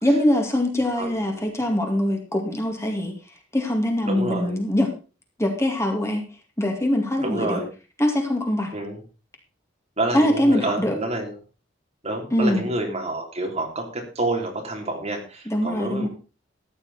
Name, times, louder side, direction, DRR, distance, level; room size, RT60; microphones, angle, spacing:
voice 1, 0.0-3.1 3.5-4.9 5.4-6.2 6.6-7.6 8.0-8.7 10.1-11.0 12.3-12.6 15.5-16.1, left 1 dB, 15° left, 2 dB, 2.3 m, -22 dB
voice 2, 1.0-1.4 4.0-4.6 7.2-7.7 8.7-9.0 10.0-11.4 12.0-16.1, right 2 dB, 35° right, 1 dB, 3.7 m, -28 dB
14.5 x 10.5 x 4.3 m, 0.34 s
head